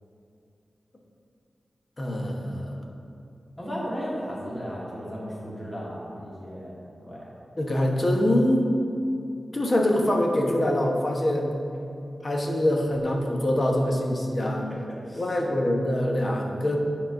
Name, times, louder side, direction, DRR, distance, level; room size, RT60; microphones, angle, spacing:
voice 1, 2.0-2.8 7.6-8.7 9.5-11.5 12.2-14.7 15.1-16.8, left 1 dB, 35° left, 0 dB, 1.1 m, -24 dB
voice 2, 3.6-7.3 14.7-15.4, equal, 15° left, -6 dB, 2.0 m, -35 dB
9.3 x 3.9 x 5.9 m, 2.5 s
wide cardioid pair, 120°, 0 cm